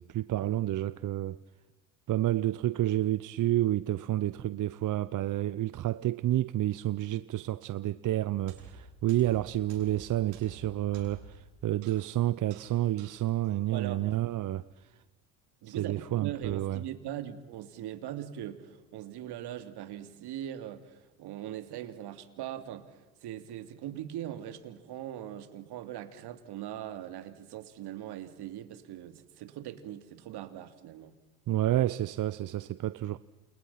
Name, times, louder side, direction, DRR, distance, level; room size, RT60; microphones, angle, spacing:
voice 1, 0.0-1.4 2.1-15.0 15.7-16.8 31.5-33.2, right 14 dB, 45° right, 0.8 m, -30 dB
sound 1, 8.3-14.6, right 5 dB, 75° right, 7.3 m, -52 dB
voice 2, 13.7-14.2 15.6-31.1, right 11 dB, 60° right, 3.1 m, -41 dB
29.0 x 29.0 x 5.9 m
hypercardioid pair, 75°, 45 cm